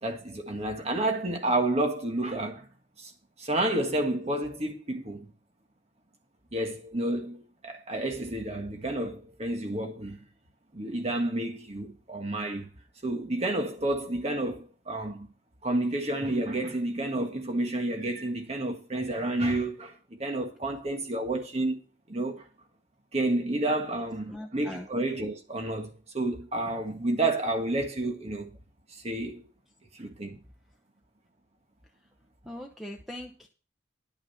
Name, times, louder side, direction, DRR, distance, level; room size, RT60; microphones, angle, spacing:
voice 1, 0.0-2.7 3.0-3.1 3.4-5.3 6.5-10.2 10.7-12.7 13.0-15.3 15.6-21.8 22.1-22.4 23.1-28.6 28.9-29.4 29.9-30.4, right 1 dB, 35° right, 1.6 m, -30 dB
voice 2, 24.3-24.9 32.5-33.5, left 1 dB, ahead, 0.9 m, -40 dB
11.0 x 6.4 x 5.7 m
head